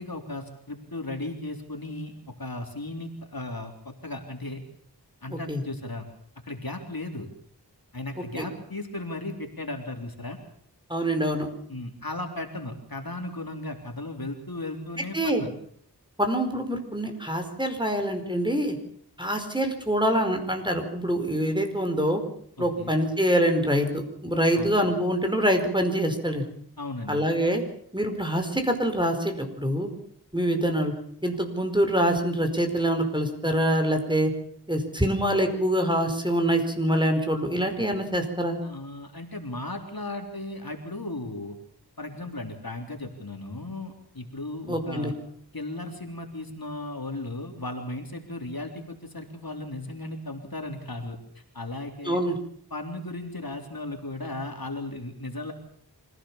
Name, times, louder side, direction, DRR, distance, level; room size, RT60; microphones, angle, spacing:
voice 1, 0.0-2.1 2.4-4.6 5.2-6.1 6.4-7.3 7.9-10.4 11.7-15.5 22.6-23.0 24.5-24.8 26.8-27.3 38.6-41.6 42.0-45.1 45.5-51.2 51.5-52.2 52.7-55.5, left 2 dB, 60° left, 3 dB, 3.7 m, -36 dB
voice 2, 5.3-5.6 8.4-8.5 10.9-11.5 15.1-15.4 16.2-18.8 19.2-22.2 22.6-26.4 27.1-27.6 27.9-29.9 30.3-30.9 31.2-34.3 34.7-38.6 44.7-45.1 52.0-52.4, equal, 10° right, 5 dB, 4.8 m, -25 dB
25.5 x 17.0 x 7.3 m, 0.64 s
wide cardioid pair, 45°, 40 cm